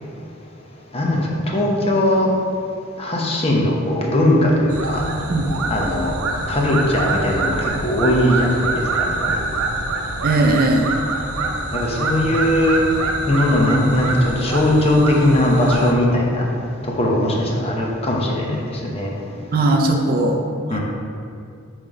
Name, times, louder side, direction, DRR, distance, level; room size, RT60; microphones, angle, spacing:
voice 1, 0.9-2.3 3.0-5.0 5.7-6.1 6.5-9.4 11.7-12.8 13.3-16.5 16.8-19.1 20.7-20.8, left 1 dB, 30° left, -2 dB, 0.8 m, -19 dB
sound 1, 4.7-15.9, right 2 dB, 90° right, 0.6 m, -25 dB
voice 2, 10.2-10.9 19.5-20.4 20.7-20.8, right 2 dB, 45° right, 2 dB, 0.5 m, -18 dB
5.7 x 3.2 x 5.1 m, 2.4 s
head